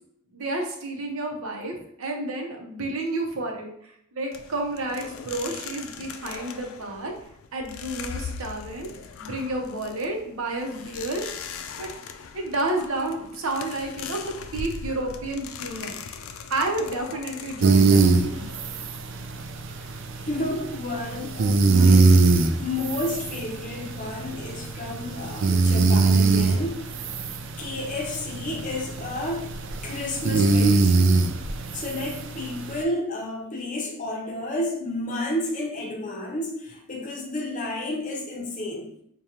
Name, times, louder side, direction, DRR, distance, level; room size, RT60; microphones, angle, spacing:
voice 1, 0.3-3.7 4.2-7.1 7.5-8.9 9.2-11.3 11.8-11.9 12.3-16.0 16.5-18.4, right 2 dB, 80° right, 2 dB, 0.7 m, -30 dB
sound 1, 4.3-19.3, left 6 dB, 70° left, 0.3 m, -40 dB
sound 2, 17.6-32.8, right 3 dB, 60° right, 0.4 m, -22 dB
voice 2, 19.7-26.9 27.6-29.5 29.8-31.2 31.7-38.9, left 1 dB, 35° left, 1 dB, 0.7 m, -31 dB
4.9 x 2.2 x 2.9 m, 0.70 s
head